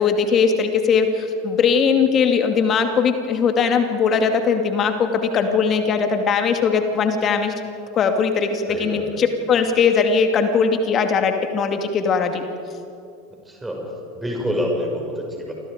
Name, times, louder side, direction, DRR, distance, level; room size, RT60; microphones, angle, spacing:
voice 1, 0.0-7.5 7.9-12.5, left 5 dB, 30° left, 6 dB, 2.4 m, -19 dB
voice 2, 8.7-9.0 13.4-13.8 14.1-15.5, equal, 10° right, 0 dB, 6.6 m, -26 dB
29.0 x 25.0 x 5.2 m, 2.6 s
figure-of-eight pair, 80°, 0 cm